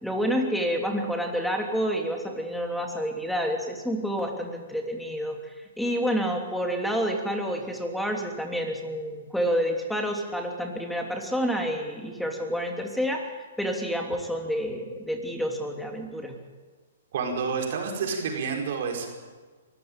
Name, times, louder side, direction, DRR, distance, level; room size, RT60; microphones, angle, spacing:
voice 1, 0.0-5.4 5.8-16.4, equal, ahead, 2 dB, 3.1 m, -29 dB
voice 2, 17.1-19.1, right 5 dB, 60° right, 2 dB, 5.0 m, -29 dB
23.5 x 14.5 x 9.0 m, 1.4 s
hypercardioid pair, 135°, 0 cm